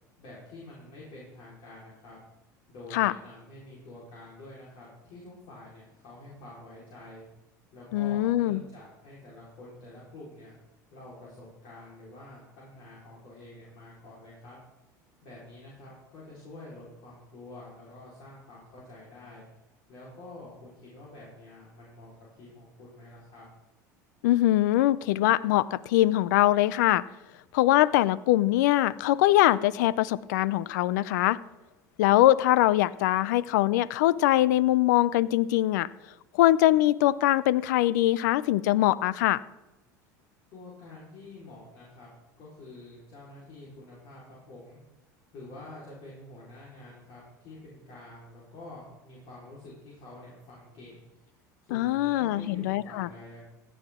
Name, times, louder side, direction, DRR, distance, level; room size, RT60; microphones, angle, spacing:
voice 1, 0.2-2.2 2.7-7.2 7.7-10.5 10.9-14.6 15.2-19.4 19.9-23.4 40.5-42.1 42.4-44.8 45.3-51.1 51.6-53.4, left 2 dB, 55° left, -6 dB, 4.1 m, -47 dB
voice 2, 7.9-8.6 24.2-27.0 27.5-31.4 32.0-35.9 36.3-39.4 51.7-53.1, left 15 dB, 75° left, 20 dB, 0.5 m, -23 dB
15.5 x 9.4 x 3.6 m, 1.0 s
hypercardioid pair, 85°, 10 cm